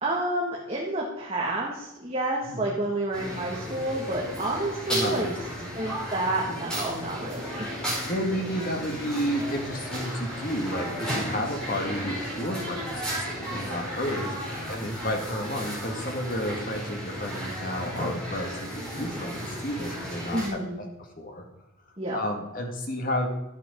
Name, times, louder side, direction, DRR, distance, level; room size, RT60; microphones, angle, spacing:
voice 1, 0.0-5.3 5.7-7.7 20.3-20.8 22.0-22.2, right 1 dB, 25° right, -3 dB, 1.8 m, -29 dB
sound 1, 3.1-20.5, equal, 5° left, 4.8 m, -34 dB
voice 2, 4.9-5.7 8.1-13.0 13.4-14.3 14.7-20.9 21.2-21.4 22.1-23.3, equal, 40° left, 2 dB, 2.1 m, -31 dB
12.5 x 8.5 x 5.2 m, 0.94 s
head